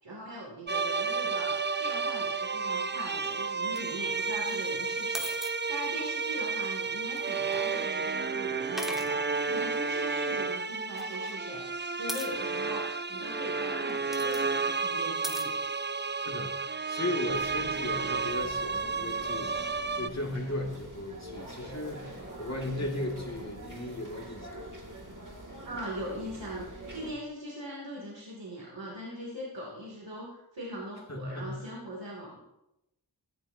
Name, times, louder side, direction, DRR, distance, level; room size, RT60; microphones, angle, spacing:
voice 1, 0.0-1.5 1.8-12.8 13.1-15.5 25.6-32.4, right 1 dB, 75° right, -4 dB, 2.8 m, -41 dB
sound 1, 0.7-20.1, right 4 dB, 25° right, 0.5 m, -32 dB
sound 2, 3.5-3.8 5.1-5.5 6.9-7.5 8.8-9.1 10.9-11.4 12.1-12.3 13.9-14.5 15.2-15.5, equal, ahead, 1.5 m, -38 dB
voice 2, 16.2-24.6 31.1-31.7, left 1 dB, 35° left, 0 dB, 2.4 m, -36 dB
sound 3, 17.3-27.1, right 1 dB, 45° right, 2.2 m, -44 dB
15.0 x 11.0 x 2.8 m, 0.90 s
wide cardioid pair, 45°, 43 cm